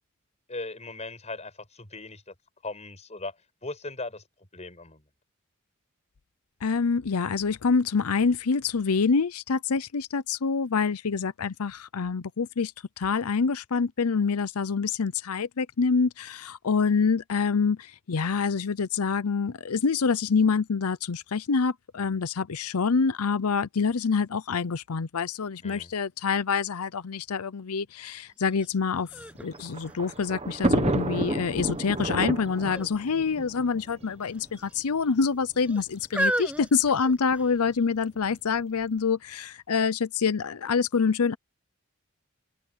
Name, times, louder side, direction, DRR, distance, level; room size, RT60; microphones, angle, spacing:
voice 1, 0.5-2.3 2.6-3.4 3.6-4.2 4.5-5.0 25.6-25.9, left 2 dB, 30° left, 6.0 m, -38 dB
voice 2, 6.6-12.7 13.0-29.1 29.4-41.4, left 5 dB, 90° left, 0.7 m, -26 dB
sound 1, 28.6-28.7 29.1-30.6 31.2-31.7 32.6-32.9 33.2-33.4 34.2-34.9 35.6-37.6 38.4-38.5, right 1 dB, 5° right, 7.1 m, -33 dB
Thunder, 29.2-34.5 35.3-35.4 35.7-35.8 36.8-37.1, right 2 dB, 30° right, 1.3 m, -30 dB
open air
head